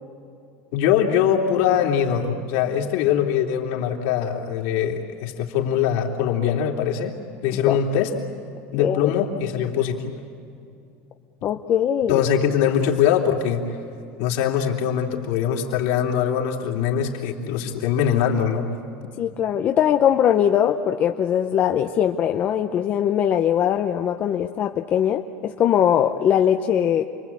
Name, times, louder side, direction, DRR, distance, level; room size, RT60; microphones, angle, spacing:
voice 1, 0.7-7.1 7.4-8.1 8.7-10.1 12.1-13.6 14.2-18.6, left 9 dB, 60° left, 1 dB, 3.1 m, -22 dB
voice 2, 8.8-9.1 11.4-12.2 19.2-27.0, left 9 dB, 30° left, 5 dB, 0.7 m, -21 dB
29.0 x 22.5 x 8.5 m, 2.6 s
cardioid pair, 175°, 6 cm